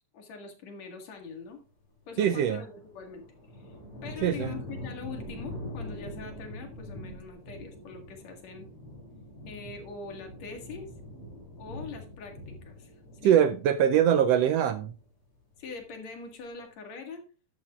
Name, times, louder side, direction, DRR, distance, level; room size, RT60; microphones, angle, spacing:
voice 1, 0.1-1.6 2.1-3.2 3.5-3.7 4.0-8.7 9.5-10.9 11.6-12.9 13.2-13.4 15.6-17.2, left 4 dB, 60° left, 3.0 m, -43 dB
voice 2, 2.2-2.6 4.2-4.6 13.2-14.9, right 9 dB, 90° right, 1.4 m, -23 dB
sound 1, 2.3-15.1 15.4-16.1, left 1 dB, 45° left, 3.8 m, -43 dB
12.0 x 11.0 x 2.4 m
omnidirectional pair, 3.5 m